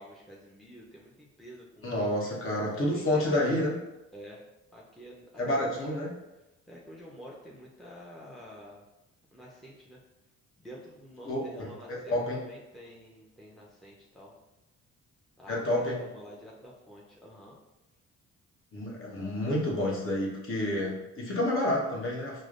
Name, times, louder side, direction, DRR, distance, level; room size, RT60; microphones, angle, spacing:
voice 1, 0.0-2.0 2.7-3.4 4.1-4.4 4.7-6.0 6.7-8.8 9.3-10.0 10.6-14.3 15.4-15.7 16.0-17.6, equal, ahead, -4 dB, 0.5 m, -48 dB
voice 2, 1.8-3.7 5.4-6.1 11.2-12.4 15.5-16.0 18.7-22.4, left 1 dB, 45° left, -3 dB, 1.0 m, -29 dB
4.9 x 2.1 x 2.4 m, 0.99 s
cardioid pair, 90°, 30 cm